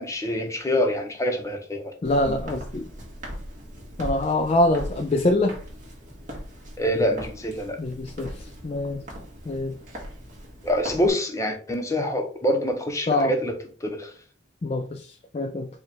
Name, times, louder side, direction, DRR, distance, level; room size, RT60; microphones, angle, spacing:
voice 1, 0.0-1.9 2.3-2.4 6.8-7.8 10.6-13.5 13.8-14.1, equal, 15° left, 3 dB, 0.8 m, -25 dB
voice 2, 2.0-2.9 4.0-5.6 7.8-9.0 9.5-9.7 13.1-13.3 14.6-15.7, left 2 dB, 30° left, 5 dB, 0.3 m, -24 dB
Walk footsteps, 2.0-11.1, equal, 45° right, 1.5 m, -39 dB
4.9 x 2.4 x 4.3 m, 0.41 s
head